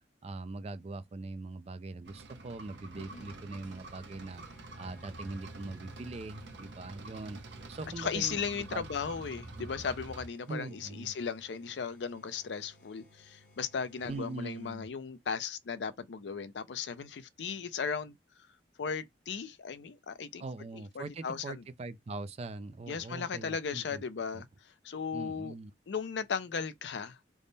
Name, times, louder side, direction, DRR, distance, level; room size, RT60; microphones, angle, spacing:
voice 1, 0.2-8.9 9.6-9.7 10.5-11.1 14.1-14.9 20.4-24.0 24.3-24.4 25.1-25.7, right 3 dB, 35° right, 0.4 m, -42 dB
sound 1, 2.0-10.3, right 2 dB, 70° right, 0.8 m, -47 dB
voice 2, 3.0-3.3 8.0-18.5 18.8-20.4 20.7-21.6 22.9-25.5 25.9-27.2, left 6 dB, 70° left, 0.4 m, -37 dB
sound 2, 3.6-15.0, left 2 dB, 45° left, 1.0 m, -62 dB
sound 3, 13.9-15.2, left 1 dB, 15° left, 0.5 m, -57 dB
3.5 x 2.1 x 3.9 m
head